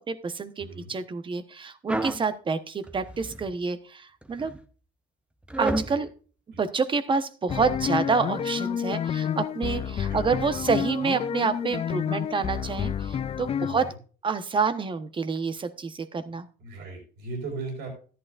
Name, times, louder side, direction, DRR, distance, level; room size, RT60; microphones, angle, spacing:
voice 1, 0.1-4.5 5.6-6.1 6.6-13.9 14.2-16.5, right 5 dB, 30° right, 10 dB, 1.1 m, -28 dB
voice 2, 0.6-0.9 5.8-6.0 6.5-6.6 10.1-10.9 13.6-14.0 16.3-17.9, right 3 dB, 80° right, 1 dB, 4.9 m, -39 dB
sound 1, 1.9-2.2 2.8-3.5 4.2-4.6 5.5-5.9, right 1 dB, 5° right, 0.8 m, -30 dB
sound 2, 7.5-13.9, left 8 dB, 35° left, 0.5 m, -29 dB
13.5 x 11.0 x 2.5 m, 0.39 s
cardioid pair, 110°, 17 cm